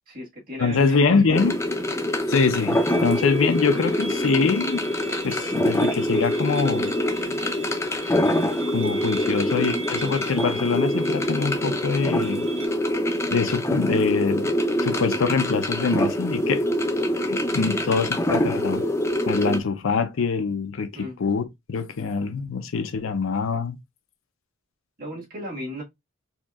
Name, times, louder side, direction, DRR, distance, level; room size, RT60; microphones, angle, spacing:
voice 1, 0.1-1.5 17.5-18.1 20.9-21.2 25.0-25.8, equal, 45° right, 1.6 m, -36 dB
voice 2, 0.6-1.6 2.3-4.9 5.2-6.9 8.7-12.4 13.3-14.5 14.8-16.6 17.3-18.8 19.3-23.8, left 4 dB, 75° left, 0.5 m, -24 dB
sound 1, 0.6-12.7, right 3 dB, 65° right, 0.6 m, -40 dB
sound 2, 1.3-19.6, left 1 dB, 15° left, 0.5 m, -25 dB
4.2 x 2.8 x 2.3 m
head